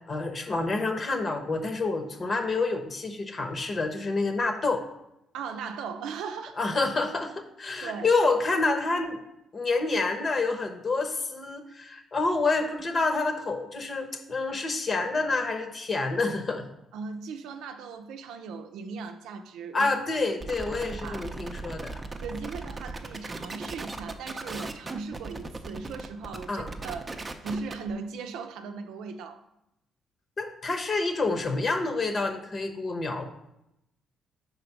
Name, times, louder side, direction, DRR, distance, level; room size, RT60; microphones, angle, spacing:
voice 1, 0.1-4.8 6.6-7.3 7.6-9.2 9.5-16.6 19.7-22.0 26.5-26.7 30.4-33.2, left 3 dB, 40° left, 5 dB, 1.0 m, -28 dB
voice 2, 5.3-6.6 7.8-8.1 16.9-19.9 21.0-21.3 22.2-29.4, right 5 dB, 90° right, 7 dB, 0.5 m, -38 dB
sound 1, 20.4-27.9, right 3 dB, 25° right, 0.6 m, -38 dB
5.0 x 4.0 x 5.9 m, 0.83 s
cardioid pair, 90°, 0 cm